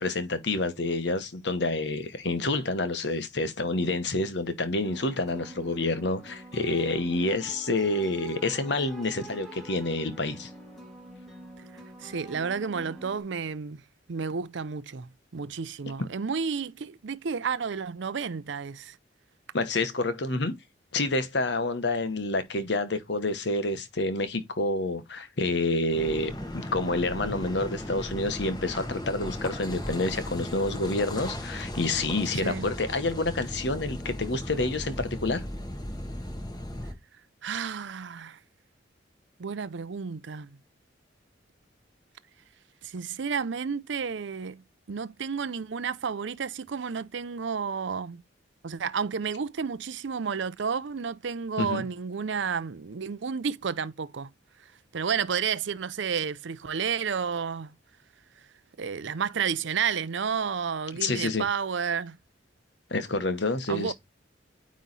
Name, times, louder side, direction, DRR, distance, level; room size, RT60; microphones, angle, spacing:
voice 1, 0.0-10.5 19.5-20.5 20.9-35.4 51.6-51.8 61.0-61.5 62.9-63.9, left 2 dB, 60° left, 1.0 m, -28 dB
sound 1, 4.8-13.2, right 1 dB, ahead, 1.7 m, -46 dB
voice 2, 12.0-13.8 14.1-19.0 32.3-32.7 37.4-38.4 39.4-40.5 42.8-44.6 44.9-48.2 48.6-54.3 54.9-57.7 58.8-62.2 63.7-63.9, right 6 dB, 70° right, 0.5 m, -31 dB
Car passing by / Idling / Accelerating revving vroom, 25.9-36.9, left 1 dB, 20° left, 1.3 m, -36 dB
9.2 x 3.1 x 4.0 m
head